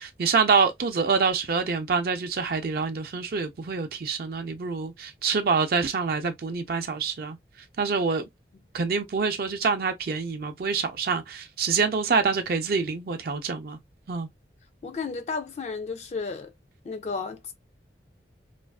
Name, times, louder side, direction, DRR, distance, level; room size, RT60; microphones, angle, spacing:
voice 1, 0.0-7.4 7.8-8.2 8.7-13.8 14.1-14.3, right 5 dB, 55° right, 0.4 m, -26 dB
voice 2, 14.8-16.5 16.8-17.5, left 4 dB, 40° left, 0.3 m, -33 dB
2.4 x 2.3 x 2.2 m
head